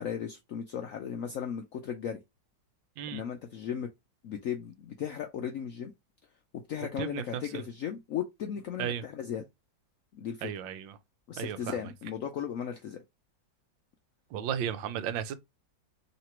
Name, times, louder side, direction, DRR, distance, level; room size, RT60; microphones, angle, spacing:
voice 1, 0.0-2.2 3.1-3.9 4.2-5.9 6.7-9.4 10.1-10.5 11.3-13.0, left 8 dB, 75° left, 0.7 m, -36 dB
voice 2, 10.4-11.0 11.4-11.8 14.3-15.3, right 9 dB, 85° right, 1.4 m, -34 dB
3.3 x 2.9 x 4.4 m
omnidirectional pair, 2.0 m